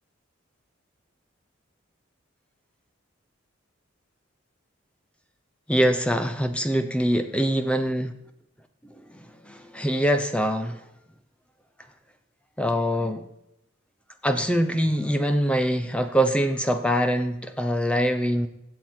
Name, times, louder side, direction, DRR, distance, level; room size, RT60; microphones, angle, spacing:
voice 1, 5.7-8.1 9.1-10.8 12.6-13.3 14.2-18.5, equal, 5° left, 7 dB, 0.7 m, -24 dB
16.0 x 7.6 x 4.5 m, 0.82 s
head